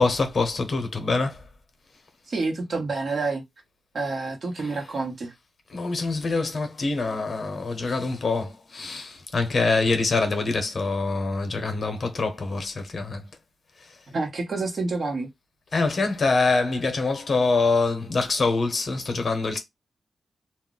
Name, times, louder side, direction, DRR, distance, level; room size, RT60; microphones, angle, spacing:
voice 1, 0.0-1.4 5.7-13.2 15.7-19.6, left 3 dB, 60° left, 0.7 m, -25 dB
voice 2, 2.3-3.4 3.9-5.3 14.1-15.3, right 3 dB, 60° right, 1.0 m, -28 dB
2.3 x 2.0 x 3.7 m
wide cardioid pair, 85°, 0 cm